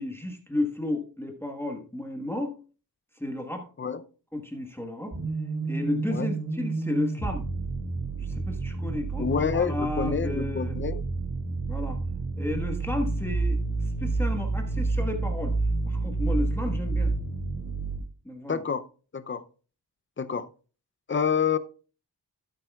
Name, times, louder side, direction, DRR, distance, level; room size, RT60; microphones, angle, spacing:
voice 1, 0.0-2.5 3.1-3.7 4.3-5.2 5.7-7.5 8.2-10.8 11.7-12.0 12.4-13.6 14.0-15.5 15.8-17.1 18.2-18.6, left 2 dB, 5° left, 1.3 m, -32 dB
sound 1, 5.1-18.0, right 3 dB, 45° right, 3.8 m, -29 dB
voice 2, 9.2-11.0 18.5-18.9 19.1-19.4 20.2-20.5 21.1-21.6, left 6 dB, 30° left, 0.5 m, -28 dB
12.5 x 8.8 x 2.3 m
wide cardioid pair, 105°, 40 cm